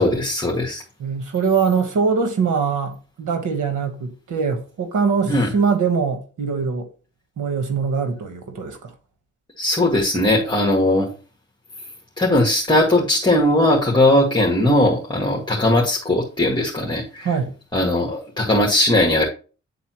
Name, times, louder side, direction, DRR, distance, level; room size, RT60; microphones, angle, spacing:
voice 1, 0.0-0.8 5.3-5.5 9.6-11.1 12.2-17.3 17.7-19.3, left 1 dB, 15° left, 1.9 m, -18 dB
voice 2, 1.0-6.9 7.4-8.9 17.2-17.5, right 5 dB, 90° right, 1.3 m, -22 dB
9.3 x 4.0 x 3.0 m
cardioid pair, 70°, 30 cm